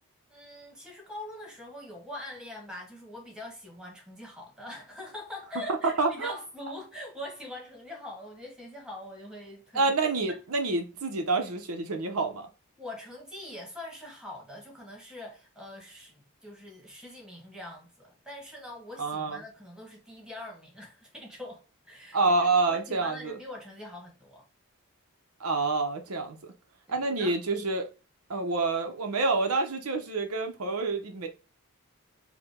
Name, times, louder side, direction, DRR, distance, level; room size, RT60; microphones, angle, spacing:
voice 1, 0.3-9.9 10.3-10.4 12.8-24.4 26.9-27.4, left 1 dB, 5° right, 1.4 m, -43 dB
voice 2, 6.0-6.3 9.7-12.5 19.0-19.4 22.1-23.3 25.4-26.4 26.9-27.9 28.3-31.3, right 3 dB, 80° right, 0.8 m, -27 dB
4.9 x 2.2 x 3.6 m
head